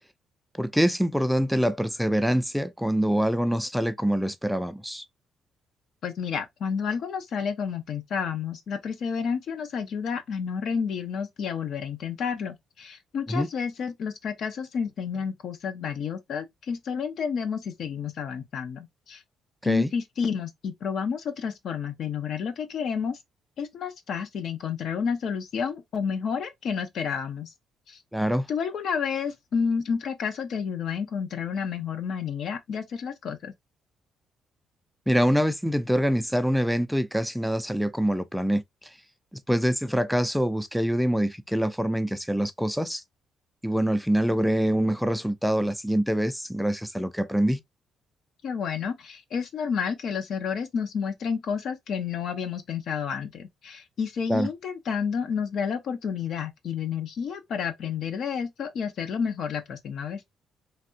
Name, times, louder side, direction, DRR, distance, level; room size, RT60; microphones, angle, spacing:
voice 1, 0.6-5.0 13.3-13.5 19.6-19.9 28.1-28.5 35.1-39.0 39.5-43.0 43.6-47.6 54.3-54.5, equal, ahead, 0.3 m, -25 dB
voice 2, 6.0-19.2 19.6-23.2 23.6-27.5 27.9-28.0 28.5-33.5 48.4-60.2, left 6 dB, 65° left, 0.7 m, -30 dB
3.3 x 2.4 x 2.6 m
cardioid pair, 90°, 0 cm